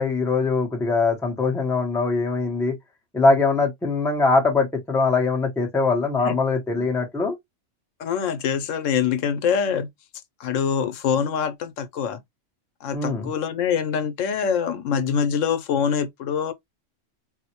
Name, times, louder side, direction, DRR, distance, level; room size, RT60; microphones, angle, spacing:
voice 1, 0.0-2.8 3.1-7.4 12.9-13.3, left 3 dB, 5° left, 0.6 m, -22 dB
voice 2, 8.0-9.9 10.4-12.2 12.8-16.5, left 7 dB, 80° left, 1.0 m, -24 dB
4.2 x 2.1 x 2.8 m
omnidirectional pair, 1.3 m